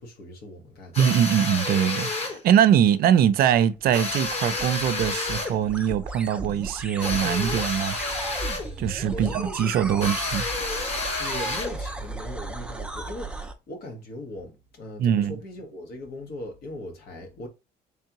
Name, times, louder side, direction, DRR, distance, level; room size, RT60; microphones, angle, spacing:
voice 1, 0.0-1.0 9.1-10.0 11.2-17.5, left 1 dB, 70° left, 1.3 m, -39 dB
sound 1, 0.9-2.4 3.9-5.6 7.0-8.7 10.0-11.8, left 3 dB, 35° left, 1.2 m, -30 dB
voice 2, 1.0-8.0 8.8-10.4 15.0-15.4, right 9 dB, 65° right, 0.5 m, -22 dB
sound 2, 3.8-13.5, right 3 dB, 5° right, 0.5 m, -36 dB
3.5 x 3.3 x 2.9 m
cardioid pair, 110°, 17 cm